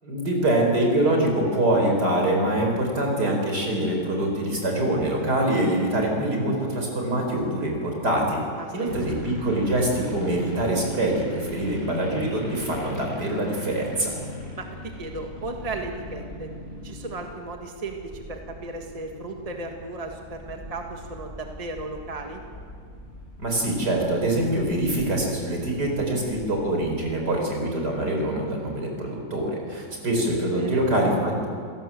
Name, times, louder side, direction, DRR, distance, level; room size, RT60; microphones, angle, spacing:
voice 1, 0.0-8.4 8.7-14.1 23.4-31.5, right 1 dB, 65° right, 0 dB, 5.5 m, -24 dB
voice 2, 8.6-9.0 14.6-16.5 16.8-22.4 30.5-30.8, right 2 dB, 20° right, 3 dB, 1.8 m, -35 dB
sound 1, 8.9-26.9, left 1 dB, 25° left, 7.8 m, -40 dB
28.0 x 17.0 x 7.6 m, 2.3 s
omnidirectional pair, 1.9 m